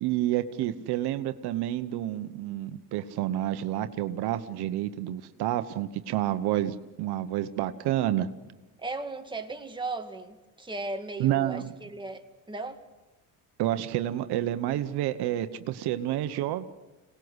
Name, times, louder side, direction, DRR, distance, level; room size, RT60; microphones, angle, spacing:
voice 1, 0.0-8.3 11.2-11.7 13.6-16.6, right 13 dB, 80° right, 11 dB, 1.1 m, -29 dB
voice 2, 8.8-12.8, right 3 dB, 10° right, 4 dB, 2.2 m, -36 dB
25.5 x 19.0 x 8.1 m, 1.1 s
cardioid pair, 105°, 39 cm